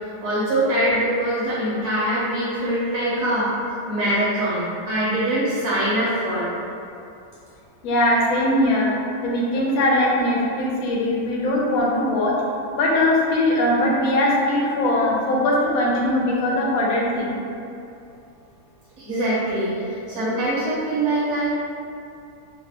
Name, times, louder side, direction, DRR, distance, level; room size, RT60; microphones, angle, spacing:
voice 1, 0.0-3.5 3.9-6.5 19.0-21.5, right 1 dB, 75° right, -10 dB, 1.1 m, -23 dB
voice 2, 7.8-8.9 9.2-12.3 12.7-17.4, left 1 dB, 70° left, -3 dB, 1.0 m, -20 dB
3.0 x 2.1 x 2.7 m, 2.6 s
omnidirectional pair, 1.7 m